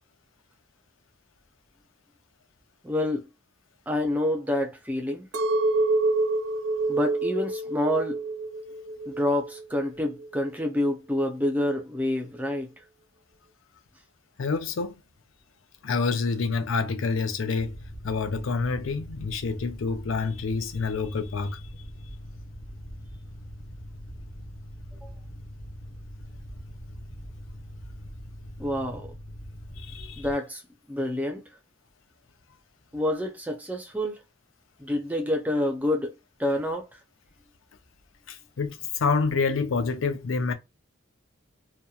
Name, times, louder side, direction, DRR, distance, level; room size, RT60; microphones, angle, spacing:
voice 1, 2.8-3.3 3.9-5.3 6.9-8.2 9.1-12.7 25.0-25.1 28.6-29.1 30.2-30.6 30.9-31.4 32.9-34.2 34.8-36.1 36.4-36.9, left 1 dB, 10° right, 0.5 m, -27 dB
Chink clink, 5.3-9.6 10.1-10.7, right 2 dB, 70° right, 0.6 m, -27 dB
voice 2, 14.4-15.0 15.8-17.8 18.0-21.6 29.8-30.3 38.3-40.5, left 4 dB, 85° left, 0.5 m, -27 dB
Mechanical fan, 17.6-30.3, equal, 30° left, 0.7 m, -42 dB
2.8 x 2.1 x 2.3 m
head